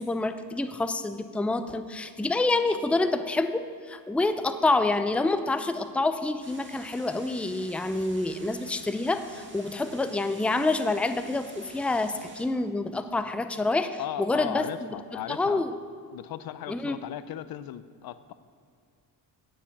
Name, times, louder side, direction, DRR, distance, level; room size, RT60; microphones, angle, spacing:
voice 1, 0.0-14.6 15.1-15.8 16.7-17.0, left 2 dB, 5° left, 9 dB, 0.5 m, -27 dB
sound 1, 6.4-12.5, right 2 dB, 25° right, 1.8 m, -50 dB
voice 2, 14.0-15.6 16.1-18.3, left 12 dB, 60° left, 14 dB, 0.6 m, -37 dB
9.7 x 7.1 x 7.2 m, 2.3 s
supercardioid pair, 75°, 42 cm